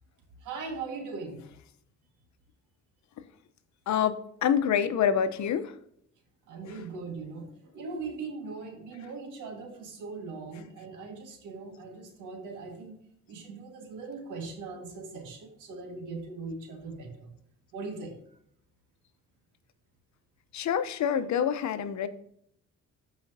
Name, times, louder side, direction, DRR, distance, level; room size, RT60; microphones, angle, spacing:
voice 1, 0.4-1.4 6.5-7.5 7.7-13.0 13.3-17.3 17.7-18.2, right 4 dB, 90° right, 3 dB, 1.9 m, -40 dB
voice 2, 3.9-5.7 6.6-6.8 20.5-22.1, left 8 dB, 70° left, 11 dB, 0.8 m, -27 dB
14.0 x 5.0 x 2.8 m, 0.71 s
cardioid pair, 90°, 30 cm